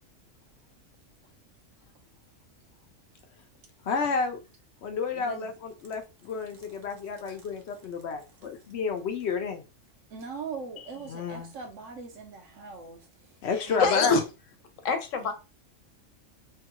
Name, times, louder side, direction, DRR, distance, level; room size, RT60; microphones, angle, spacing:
voice 1, 3.8-4.4 4.8-9.7 10.8-11.6 13.4-14.2, left 5 dB, 65° left, 0.8 m, -31 dB
voice 2, 5.1-5.5 10.1-13.0 13.7-13.8 15.2-15.3, right 5 dB, 75° right, 1.1 m, -40 dB
voice 3, 13.8-14.2 14.8-15.3, left 4 dB, 85° left, 1.1 m, -24 dB
3.4 x 2.3 x 2.9 m
omnidirectional pair, 1.3 m